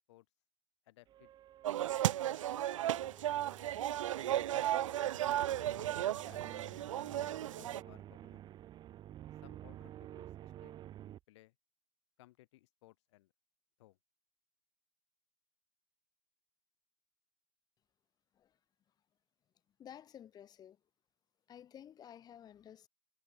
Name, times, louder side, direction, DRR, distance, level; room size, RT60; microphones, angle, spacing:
voice 1, 0.8-1.3 2.2-3.0 4.3-4.7 5.2-6.0 6.3-6.6 7.4-8.5 9.4-10.8 11.3-11.5 12.2-13.3 13.8-14.0, left 18 dB, 60° left, 6.8 m, -62 dB
sound 1, 1.1-11.2, right 12 dB, 25° right, 1.1 m, -52 dB
sound 2, 1.6-7.8, right 12 dB, 75° right, 0.6 m, -34 dB
voice 2, 19.8-20.8 21.5-22.9, left 9 dB, 25° left, 2.2 m, -53 dB
hypercardioid pair, 125°, 16 cm